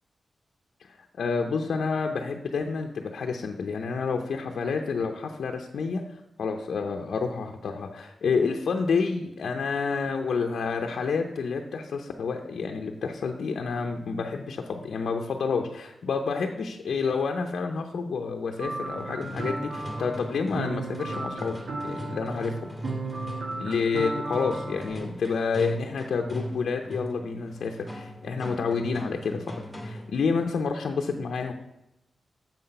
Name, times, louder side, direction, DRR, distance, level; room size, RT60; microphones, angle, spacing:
voice 1, 0.8-6.0 6.4-21.6 21.8-22.5 23.6-31.5, left 5 dB, 80° left, 3 dB, 0.6 m, -29 dB
sound 1, 18.6-25.0, right 2 dB, 70° right, 1.2 m, -35 dB
sound 2, 19.0-30.2, equal, 5° left, 2.1 m, -39 dB
7.2 x 5.8 x 5.5 m, 0.90 s
cardioid pair, 85°, 0 cm